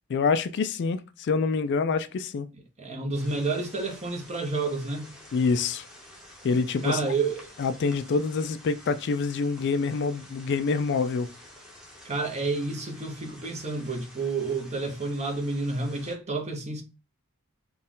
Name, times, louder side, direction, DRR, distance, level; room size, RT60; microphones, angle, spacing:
voice 1, 0.1-2.5 5.3-5.9 6.4-7.1 7.6-11.3, left 4 dB, 50° left, 0.3 m, -26 dB
voice 2, 2.5-5.1 6.8-7.5 12.0-16.8, right 3 dB, 30° right, 0.9 m, -30 dB
sound 1, 3.1-16.2, left 1 dB, 5° right, 1.0 m, -50 dB
4.3 x 2.4 x 3.6 m
head